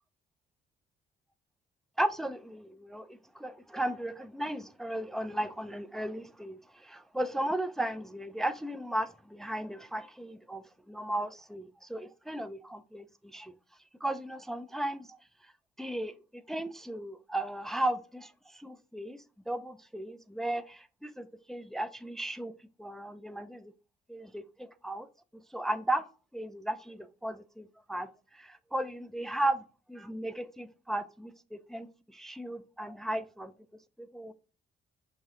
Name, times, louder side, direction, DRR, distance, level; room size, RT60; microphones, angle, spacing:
voice 1, 2.0-13.5 14.0-15.2 15.8-16.1 16.5-22.5 22.8-23.7 24.1-25.1 25.5-26.1 26.3-33.5 34.0-34.3, right 1 dB, ahead, 0.3 m, -35 dB
5.1 x 2.7 x 3.6 m
cardioid pair, 90°, 20 cm